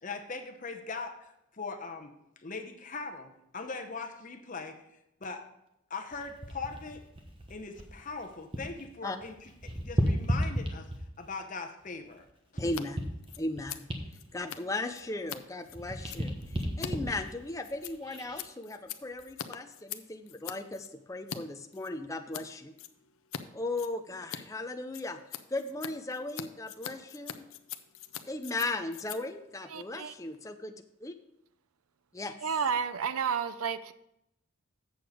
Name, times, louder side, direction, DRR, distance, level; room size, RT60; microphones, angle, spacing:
voice 1, 0.0-4.8 5.2-5.5 5.9-7.0 7.5-10.9 11.2-12.3, left 4 dB, 35° left, 5 dB, 0.8 m, -40 dB
sound 1, 6.1-8.9 9.1-11.3 11.8-15.4 15.7-18.5 19.0-19.2, equal, 25° right, 1.1 m, -35 dB
Scissors, 12.6-12.8 13.1-21.4 21.7-22.5 22.8-23.4 23.7-30.5, left 9 dB, 75° left, 0.6 m, -44 dB
voice 2, 12.6-13.0 13.4-13.9 14.3-22.7 23.5-27.5 28.3-30.7 31.0-31.1 32.1-32.4, left 2 dB, 15° left, 6 dB, 0.4 m, -37 dB
voice 3, 29.7-30.1 32.4-33.9, right 6 dB, 85° right, 13 dB, 0.5 m, -31 dB
7.9 x 6.7 x 4.9 m, 0.82 s
head